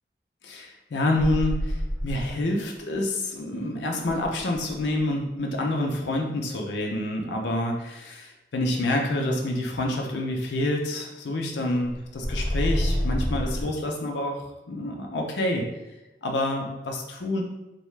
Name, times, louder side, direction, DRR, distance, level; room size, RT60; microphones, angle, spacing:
voice 1, 0.4-15.7 16.2-17.4, left 1 dB, 85° left, 1 dB, 0.5 m, -28 dB
sound 1, 1.2-2.4 4.1-5.0 11.9-13.6, equal, 20° left, 0.6 m, -27 dB
2.7 x 2.2 x 3.1 m, 1.0 s
head